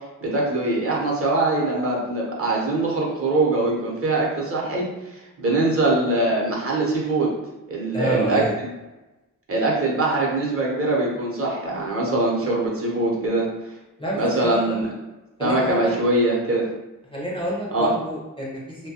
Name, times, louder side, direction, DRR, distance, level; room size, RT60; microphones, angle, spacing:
voice 1, 0.2-4.9 5.4-7.3 7.7-8.7 9.5-13.5 14.2-14.9 15.4-16.7 17.7-17.9, right 2 dB, 45° right, -3 dB, 0.7 m, -22 dB
voice 2, 7.9-8.6 14.0-14.8 15.4-15.9 17.1-18.9, right 1 dB, 15° left, -5 dB, 0.4 m, -28 dB
2.7 x 2.2 x 2.7 m, 1.1 s
wide cardioid pair, 145°, 33 cm